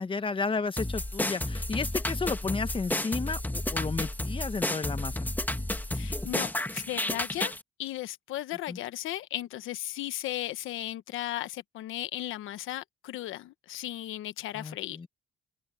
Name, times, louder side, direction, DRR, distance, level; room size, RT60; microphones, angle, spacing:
voice 1, 0.0-5.2 8.7-8.8 14.5-15.1, left 4 dB, 25° left, 1.3 m, -33 dB
sound 1, 0.8-7.6, left 1 dB, 10° left, 1.5 m, -31 dB
voice 2, 5.9-7.5 7.8-15.0, left 14 dB, 85° left, 1.1 m, -36 dB
cardioid pair, 90°, 20 cm